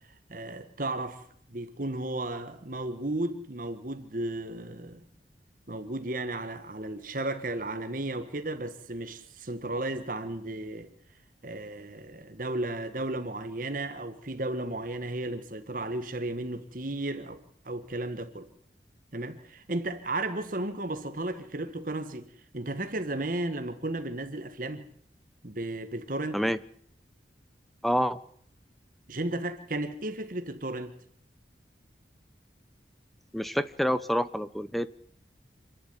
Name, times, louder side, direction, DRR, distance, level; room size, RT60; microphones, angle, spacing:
voice 1, 0.3-1.2 1.5-5.0 5.7-10.9 11.4-18.5 19.1-22.3 22.5-24.9 25.4-26.4 29.1-30.9, right 2 dB, 50° right, 1.7 m, -34 dB
voice 2, 27.8-28.2 33.3-34.9, equal, ahead, 0.9 m, -27 dB
27.5 x 11.0 x 9.7 m
head